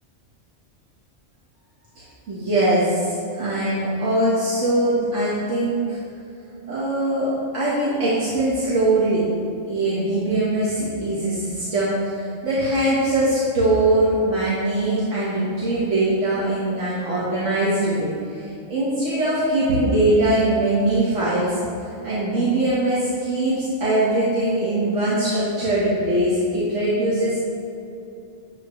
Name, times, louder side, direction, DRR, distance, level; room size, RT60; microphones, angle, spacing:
voice 1, 2.0-6.0 6.7-9.3 9.7-18.1 18.7-21.6 22.0-27.4, right 1 dB, 75° right, -9 dB, 1.9 m, -21 dB
10.5 x 7.5 x 3.2 m, 2.7 s
omnidirectional pair, 1.3 m